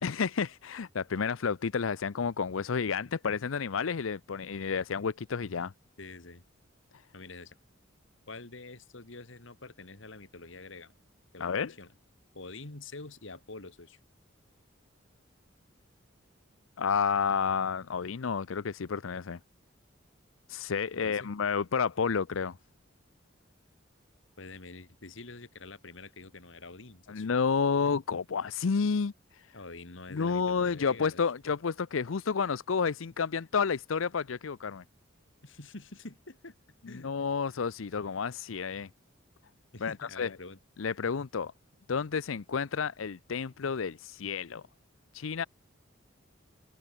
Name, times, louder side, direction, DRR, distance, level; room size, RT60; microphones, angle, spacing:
voice 1, 0.0-5.7 11.4-11.7 16.8-19.4 20.5-22.6 27.1-29.5 30.1-34.8 36.8-38.9 39.8-40.4 40.8-41.5 41.9-44.6 45.1-45.4, left 5 dB, 90° left, 0.6 m, -30 dB
voice 2, 6.0-6.4 7.1-7.6 8.3-10.9 11.3-11.9 12.3-14.0 21.0-21.3 24.4-27.3 29.5-31.2 35.4-36.6 36.9-37.2 38.0-38.2 39.7-40.6, left 3 dB, 70° left, 2.1 m, -46 dB
head